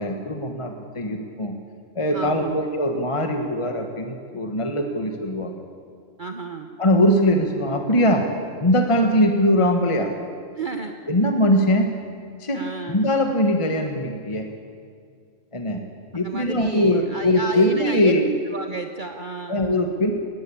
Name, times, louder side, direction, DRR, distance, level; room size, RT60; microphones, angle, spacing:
voice 1, 0.0-1.6 1.9-5.5 6.8-8.3 8.6-10.1 11.1-11.9 12.4-14.5 15.5-15.8 16.1-18.3 19.5-20.1, left 1 dB, 25° left, 4 dB, 1.4 m, -21 dB
voice 2, 2.1-2.7 6.2-6.7 10.5-11.0 12.5-13.0 16.1-18.1 18.5-19.6, right 3 dB, 40° right, 5 dB, 1.1 m, -32 dB
20.0 x 18.5 x 8.6 m, 2.2 s
omnidirectional pair, 1.3 m